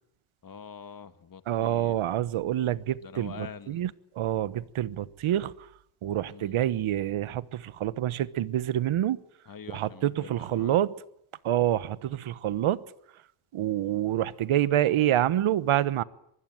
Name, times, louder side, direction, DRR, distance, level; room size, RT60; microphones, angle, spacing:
voice 1, 0.4-2.0 3.0-3.8 6.3-6.6 9.5-10.8 12.1-12.2, left 7 dB, 45° left, 1.8 m, -45 dB
voice 2, 1.5-3.9 4.2-5.5 6.0-9.2 9.7-10.9 11.4-12.8 13.5-16.0, right 12 dB, 80° right, 1.2 m, -27 dB
24.0 x 22.5 x 9.2 m
cardioid pair, 115°, 48 cm